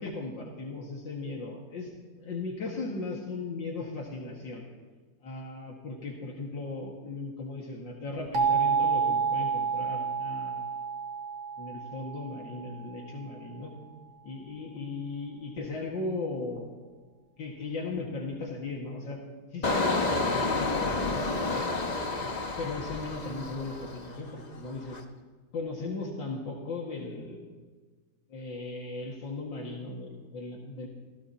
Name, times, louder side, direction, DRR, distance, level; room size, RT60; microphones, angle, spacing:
voice 1, 0.0-4.6 5.2-10.7 11.6-13.7 14.2-16.7 17.4-21.7 22.6-25.0 25.5-27.4 28.3-30.9, left 3 dB, 70° left, -2 dB, 2.5 m, -37 dB
sound 1, 8.3-13.0, right 6 dB, 85° right, 2.1 m, -29 dB
Engine, 19.6-24.3 24.7-25.0, left 3 dB, 30° left, 0.9 m, -30 dB
26.5 x 16.5 x 2.9 m, 1.4 s
omnidirectional pair, 2.1 m